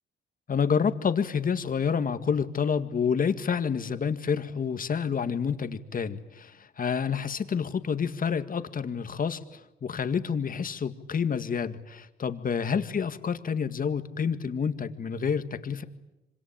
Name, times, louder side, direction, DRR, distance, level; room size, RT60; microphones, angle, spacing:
voice 1, 0.5-15.8, left 6 dB, 45° left, 10 dB, 2.0 m, -28 dB
26.0 x 25.5 x 8.8 m, 0.95 s
cardioid pair, 90°, 20 cm